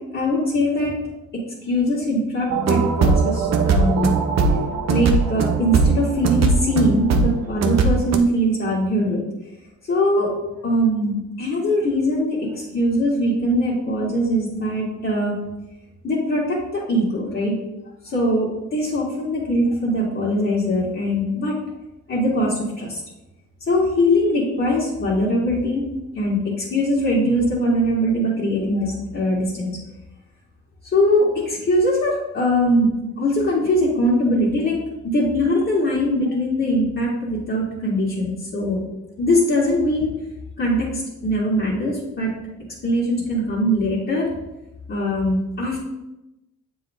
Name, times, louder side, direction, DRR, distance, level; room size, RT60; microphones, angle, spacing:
voice 1, 0.1-0.9 1.3-4.2 4.9-9.2 9.9-10.3 10.6-15.4 16.0-17.6 18.0-21.6 22.1-23.0 23.7-25.8 26.1-29.8 30.9-32.9 33.2-34.8 35.0-38.8 39.2-40.1 40.6-42.3 42.8-44.3 44.9-45.8, equal, 40° left, -9 dB, 2.1 m, -21 dB
sound 1, 2.5-8.2, right 4 dB, 60° right, 0.8 m, -19 dB
7.4 x 4.0 x 3.6 m, 0.93 s
cardioid pair, 90°, 30 cm